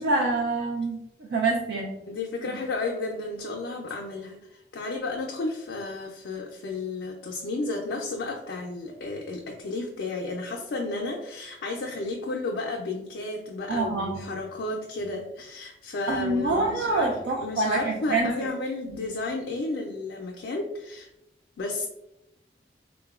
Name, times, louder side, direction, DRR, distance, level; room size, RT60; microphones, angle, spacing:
voice 1, 0.0-1.9 13.7-14.2 16.1-18.3, right 3 dB, 75° right, -1 dB, 0.4 m, -26 dB
voice 2, 2.1-21.1 21.6-21.9, left 3 dB, 75° left, 0 dB, 0.4 m, -32 dB
3.7 x 2.1 x 2.3 m, 0.88 s
head